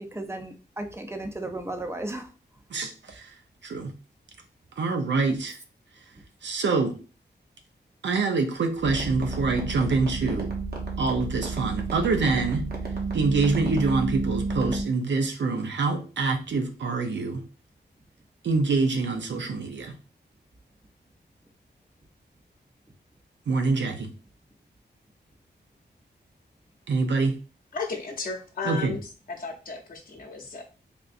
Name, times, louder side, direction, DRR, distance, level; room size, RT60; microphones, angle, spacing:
voice 1, 0.1-2.3, right 1 dB, 15° right, 0.4 m, -34 dB
voice 2, 2.7-3.3 3.6-3.9 4.8-5.6 6.4-7.0 8.0-10.5 11.0-12.7 13.1-17.4 18.4-19.9 23.5-24.1 26.9-27.4 28.6-28.9, right 4 dB, 90° right, 0.6 m, -25 dB
sound 1, 8.8-14.8, right 3 dB, 60° right, 0.8 m, -31 dB
voice 3, 27.7-29.0 29.3-30.6, left 4 dB, 55° left, 0.7 m, -34 dB
3.5 x 2.7 x 2.4 m
wide cardioid pair, 150°, 18 cm